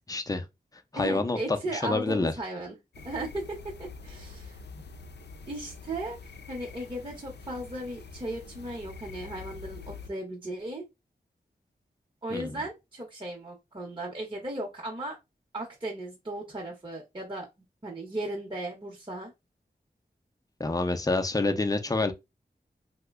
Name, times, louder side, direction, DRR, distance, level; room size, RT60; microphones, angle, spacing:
voice 1, 0.1-0.4 0.9-2.3 12.3-12.5 20.6-22.1, left 2 dB, 20° left, 0.5 m, -27 dB
voice 2, 0.9-2.8 3.0-4.6 5.5-6.2 6.5-10.8 12.2-15.2 15.5-17.5 17.8-19.3, right 1 dB, 30° right, 0.9 m, -36 dB
sound 1, 2.9-10.1, left 4 dB, 85° left, 0.5 m, -45 dB
2.8 x 2.1 x 3.5 m
wide cardioid pair, 70°, 17 cm